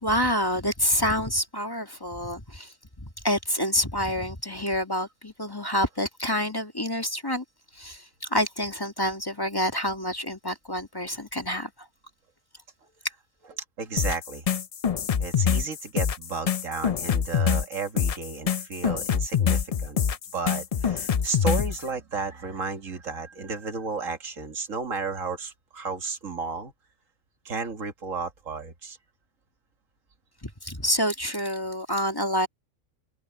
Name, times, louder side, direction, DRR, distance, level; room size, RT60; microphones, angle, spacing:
voice 1, 0.0-7.4 7.7-11.9 30.4-32.5, equal, 15° left, 2.0 m, -28 dB
voice 2, 13.8-14.4 15.2-20.0 20.3-26.7 27.5-29.0, right 4 dB, 80° right, 2.1 m, -33 dB
sound 1, 14.0-21.8, left 7 dB, 55° left, 0.4 m, -25 dB
open air
omnidirectional pair, 1.3 m